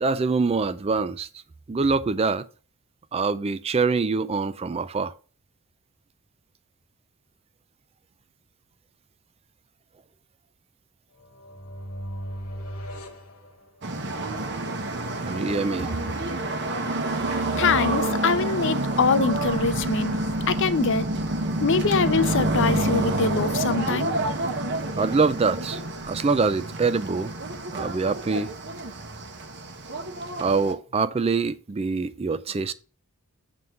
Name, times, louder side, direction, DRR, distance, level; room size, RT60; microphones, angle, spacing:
voice 1, 0.0-1.3 1.7-2.5 3.1-5.1 15.2-16.0 25.0-27.3 27.7-28.6 30.4-32.7, right 4 dB, 25° right, 0.4 m, -24 dB
sound 1, 11.2-14.2, equal, 80° left, 1.9 m, -38 dB
sound 2, 13.8-30.7, right 2 dB, 50° right, 1.1 m, -28 dB
voice 2, 17.3-20.2 20.5-21.1 21.6-24.1, left 5 dB, 55° left, 0.6 m, -24 dB
7.6 x 3.8 x 6.6 m
head